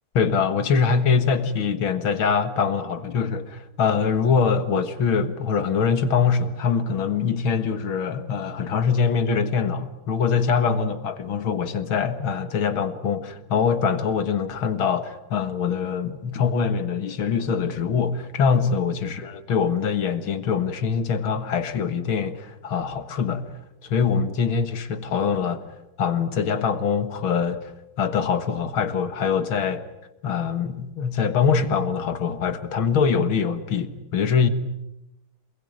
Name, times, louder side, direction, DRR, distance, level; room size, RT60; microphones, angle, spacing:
voice 1, 0.2-23.5 23.8-25.6 26.0-27.7 28.0-29.8 30.2-34.5, left 6 dB, 70° left, 2.3 m, -23 dB
27.5 x 21.5 x 9.5 m
omnidirectional pair, 2.3 m